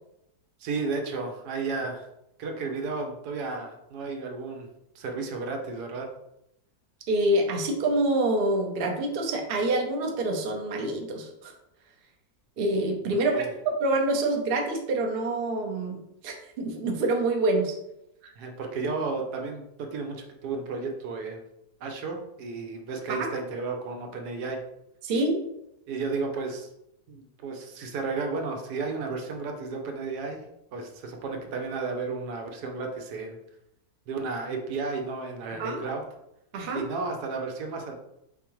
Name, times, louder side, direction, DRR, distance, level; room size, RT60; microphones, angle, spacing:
voice 1, 0.6-2.1 2.4-4.7 4.9-6.1 13.3-13.5 18.2-21.4 21.8-24.6 25.9-26.7 27.1-30.4 30.7-33.4 34.1-36.0 36.7-37.9, right 4 dB, 80° right, 3 dB, 1.3 m, -33 dB
voice 2, 7.1-11.5 12.6-16.0 16.2-17.7 23.1-23.3 25.0-25.4 35.6-35.8 36.5-36.8, right 2 dB, 50° right, 2 dB, 0.7 m, -26 dB
4.5 x 3.6 x 3.0 m, 0.82 s
omnidirectional pair, 1.7 m